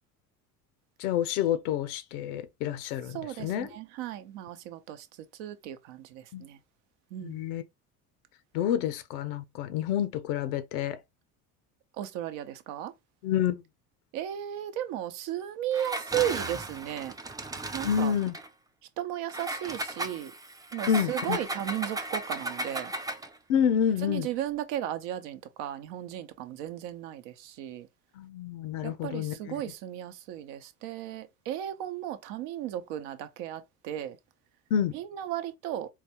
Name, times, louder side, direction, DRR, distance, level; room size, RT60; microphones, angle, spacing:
voice 1, 1.0-3.1 3.4-3.7 6.3-6.4 7.2-7.6 8.5-11.0 13.2-13.6 17.8-18.3 20.9-21.4 23.5-24.3 28.2-29.6 34.7-34.9, left 9 dB, 80° left, 0.7 m, -28 dB
voice 2, 3.1-5.1 5.4-6.6 7.1-7.5 12.0-12.9 14.1-17.1 17.7-18.1 19.0-20.3 20.7-22.9 24.0-27.9 28.8-34.2 34.9-35.9, right 11 dB, 70° right, 0.7 m, -35 dB
Engine, 15.7-18.5 19.3-23.4, right 2 dB, 10° right, 0.3 m, -36 dB
3.9 x 2.3 x 2.8 m
hypercardioid pair, 65°, 44 cm